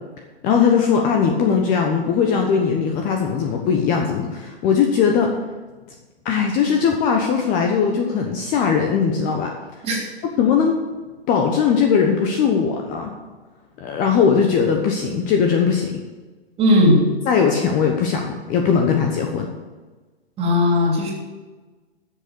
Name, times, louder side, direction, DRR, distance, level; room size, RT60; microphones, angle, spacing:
voice 1, 0.4-5.3 6.2-9.5 10.2-10.8 11.3-13.1 13.8-16.0 17.3-19.5, left 6 dB, 25° left, 3 dB, 1.1 m, -19 dB
voice 2, 16.6-17.0 20.4-21.1, left 1 dB, 20° right, -1 dB, 3.1 m, -16 dB
12.5 x 6.9 x 6.9 m, 1.3 s
figure-of-eight pair, 120°, 32 cm